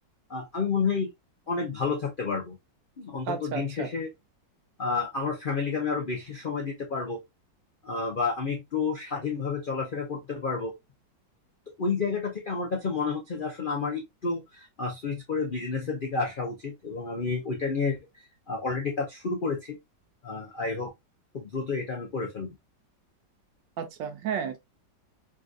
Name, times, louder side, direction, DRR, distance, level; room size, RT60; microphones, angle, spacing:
voice 1, 0.3-1.1 1.5-2.5 3.0-4.1 4.8-7.2 7.8-10.7 11.8-19.8 20.2-20.9 21.3-22.5, left 4 dB, 70° left, 0.4 m, -30 dB
voice 2, 3.3-3.9 23.8-24.6, right 7 dB, 85° right, 1.4 m, -32 dB
3.8 x 2.6 x 2.4 m
omnidirectional pair, 1.9 m